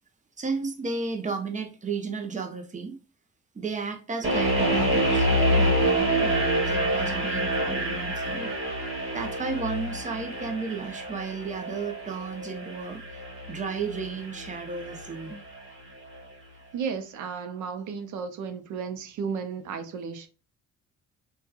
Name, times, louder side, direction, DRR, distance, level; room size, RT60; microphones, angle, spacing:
voice 1, 0.4-3.0 3.5-8.5 9.1-13.2 13.5-15.4, right 4 dB, 25° right, 0.6 m, -33 dB
sound 1, 4.2-15.3, right 1 dB, 45° right, 1.4 m, -27 dB
voice 2, 16.7-20.3, right 6 dB, 75° right, 0.6 m, -33 dB
2.8 x 2.3 x 2.3 m
cardioid pair, 90°, 30 cm